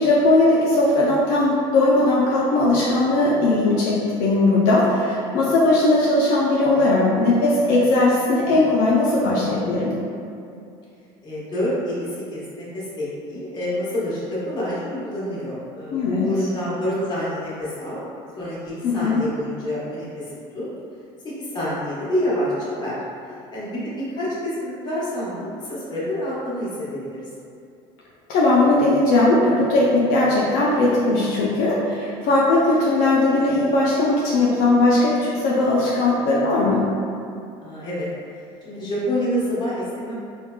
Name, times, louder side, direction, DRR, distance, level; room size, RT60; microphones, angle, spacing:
voice 1, 0.0-9.9 15.9-16.3 18.8-19.2 28.3-36.8, left 2 dB, 70° left, -6 dB, 0.5 m, -18 dB
voice 2, 11.2-18.1 18.4-20.2 20.5-20.7 21.2-22.9 23.5-27.2 37.6-38.1 38.6-40.1, equal, 30° left, -9 dB, 1.1 m, -27 dB
3.4 x 2.2 x 2.2 m, 2.5 s
cardioid pair, 120°, 15 cm